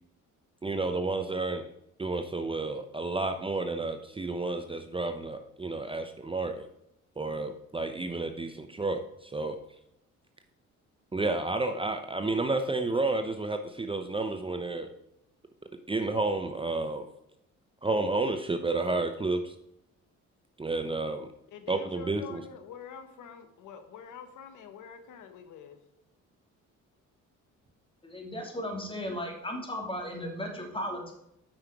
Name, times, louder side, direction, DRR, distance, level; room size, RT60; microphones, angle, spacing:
voice 1, 0.6-1.7 2.0-6.7 7.2-9.6 11.1-14.9 15.9-17.1 17.8-19.5 20.6-21.3 21.7-22.4, right 3 dB, 15° right, 7 dB, 0.7 m, -31 dB
voice 2, 21.5-25.8, left 7 dB, 80° left, 8 dB, 1.1 m, -46 dB
voice 3, 28.0-31.1, left 1 dB, 15° left, 1 dB, 2.8 m, -36 dB
8.8 x 5.8 x 4.6 m, 0.81 s
cardioid pair, 90°, 30 cm